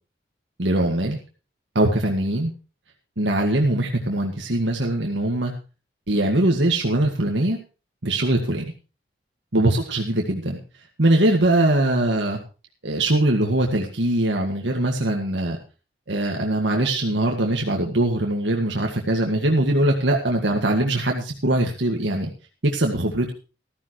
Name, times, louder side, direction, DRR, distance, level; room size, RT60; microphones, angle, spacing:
voice 1, 0.6-1.2 1.8-2.5 3.2-5.5 6.1-7.6 8.0-8.7 9.5-10.6 11.0-12.4 12.8-15.6 16.1-22.3 22.6-23.3, right 1 dB, 75° right, 1 dB, 1.9 m, -21 dB
15.0 x 14.0 x 3.1 m, 0.34 s
head